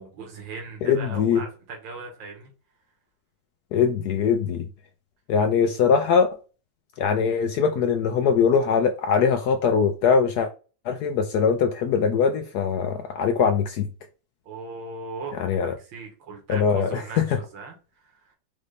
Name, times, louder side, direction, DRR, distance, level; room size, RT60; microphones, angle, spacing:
voice 1, 0.0-2.5 14.5-17.8 18.0-18.4, right 4 dB, 80° right, 2.1 m, -39 dB
voice 2, 0.8-1.4 3.7-4.6 5.3-6.3 7.0-10.5 10.9-13.9 15.4-15.7 16.5-17.2, left 6 dB, 75° left, 0.9 m, -22 dB
5.2 x 2.5 x 3.3 m
omnidirectional pair, 2.1 m